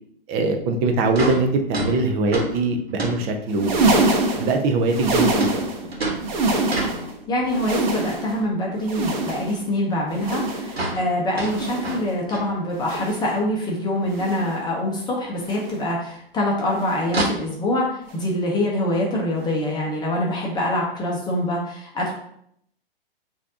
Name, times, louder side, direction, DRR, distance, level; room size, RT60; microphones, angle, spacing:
voice 1, 0.3-4.0 4.3-5.5 5.8-5.9, right 3 dB, 20° right, 4 dB, 0.5 m, -22 dB
sound 1, 0.8-0.9 1.1-3.8 5.4-7.7 8.1-8.9 9.1-9.2 9.6-9.7 10.0-10.1 10.3-10.4 10.7-13.1 13.5-13.6 13.9-14.0 15.1-15.2 17.1-17.2, right 2 dB, 85° right, 1.1 m, -30 dB
sound 2, 3.5-5.9 6.1-7.1 7.4-8.4 8.8-9.7 10.1-10.9 11.4-12.1 12.8-13.3 14.1-14.6 15.4-15.8 16.8-17.1 18.1-18.3 19.4-19.5, right 2 dB, 50° right, 1.0 m, -25 dB
voice 2, 7.3-22.1, left 1 dB, 15° left, -3 dB, 0.8 m, -25 dB
6.1 x 2.7 x 2.8 m, 0.70 s
figure-of-eight pair, 115°, 30 cm